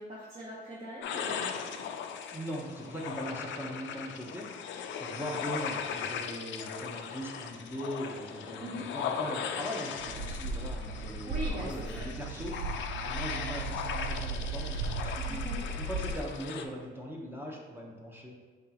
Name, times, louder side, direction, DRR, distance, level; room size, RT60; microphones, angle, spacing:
voice 1, 0.0-1.7 8.6-8.9 11.3-12.1 15.2-15.6, equal, 35° right, -6 dB, 1.0 m, -41 dB
sound 1, 1.0-16.7, left 7 dB, 70° left, 0.4 m, -38 dB
voice 2, 2.3-4.7 5.0-15.5 15.8-18.4, equal, 10° right, -2 dB, 0.8 m, -40 dB
sound 2, 10.0-16.2, right 3 dB, 85° right, 0.5 m, -36 dB
4.7 x 3.6 x 2.9 m, 1.5 s
cardioid pair, 90°, 20 cm